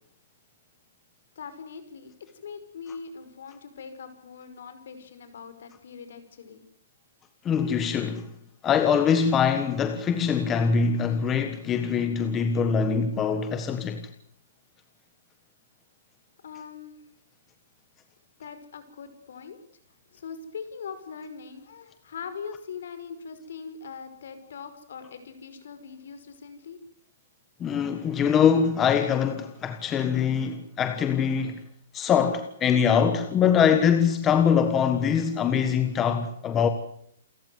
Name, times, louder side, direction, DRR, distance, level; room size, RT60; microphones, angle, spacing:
voice 1, 1.4-2.1 2.4-6.6 16.4-17.0 18.4-19.6 20.1-26.8, left 6 dB, 65° left, 5.5 m, -41 dB
voice 2, 7.4-8.3 8.6-14.1 27.6-31.6 31.9-36.7, left 7 dB, 15° left, 1.4 m, -23 dB
28.5 x 15.0 x 9.6 m
hypercardioid pair, 175°, 0 cm